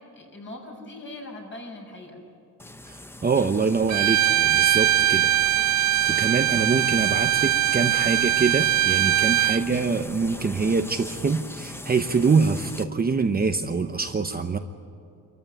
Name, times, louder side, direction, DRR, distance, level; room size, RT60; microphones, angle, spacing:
voice 1, 0.1-2.2 9.2-9.3, left 2 dB, 35° left, 1 dB, 6.0 m, -41 dB
sound 1, 2.6-12.8, left 1 dB, 5° left, 0.8 m, -40 dB
voice 2, 2.9-5.5 6.1-14.6, right 4 dB, 25° right, 6 dB, 0.9 m, -25 dB
Bowed string instrument, 3.9-9.6, right 12 dB, 55° right, 0.6 m, -21 dB
26.5 x 14.5 x 9.7 m, 2.6 s
cardioid pair, 130°, 35 cm